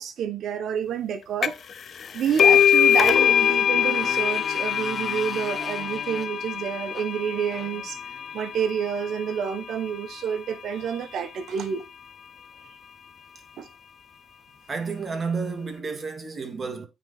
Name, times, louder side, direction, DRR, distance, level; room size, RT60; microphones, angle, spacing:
voice 1, 0.0-1.6 2.1-8.0 8.3-11.9 13.6-13.7, right 8 dB, 70° right, 1.1 m, -29 dB
sound 1, 1.4-1.7 2.0-9.3, left 9 dB, 55° left, 0.4 m, -23 dB
Motorcycle, 2.0-8.5, left 4 dB, 35° left, 1.0 m, -41 dB
voice 2, 14.7-16.8, right 4 dB, 35° right, 2.2 m, -31 dB
9.0 x 4.0 x 4.2 m
cardioid pair, 90°, 0 cm